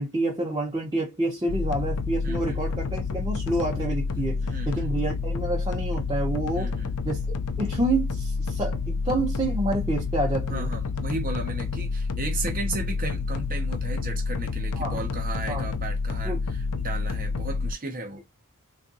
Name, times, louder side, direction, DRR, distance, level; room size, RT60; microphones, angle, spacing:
voice 1, 0.0-4.4 4.7-6.7 7.0-7.2 7.6-10.7 14.8-15.0 15.5-15.6 16.2-16.4, right 1 dB, 20° right, 1.0 m, -28 dB
sound 1, 1.5-17.7, left 4 dB, 75° left, 0.4 m, -29 dB
voice 2, 2.2-2.6 4.4-4.9 6.5-6.9 10.5-18.2, right 2 dB, 40° right, 0.9 m, -35 dB
3.5 x 2.6 x 2.6 m
head